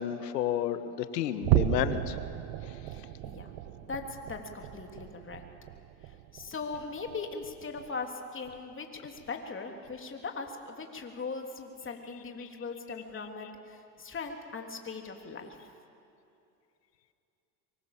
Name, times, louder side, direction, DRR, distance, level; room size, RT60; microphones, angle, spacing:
voice 1, 0.0-2.2, left 10 dB, 90° left, 11 dB, 1.5 m, -31 dB
sound 1, 1.4-8.1 8.4-8.7 9.2-9.3 9.9-10.0, right 14 dB, 65° right, 1.4 m, -34 dB
voice 2, 2.9-3.5 3.9-5.4 6.0-15.6, left 4 dB, 25° left, 3 dB, 3.2 m, -40 dB
24.5 x 23.5 x 7.3 m, 2.6 s
hypercardioid pair, 90°, 48 cm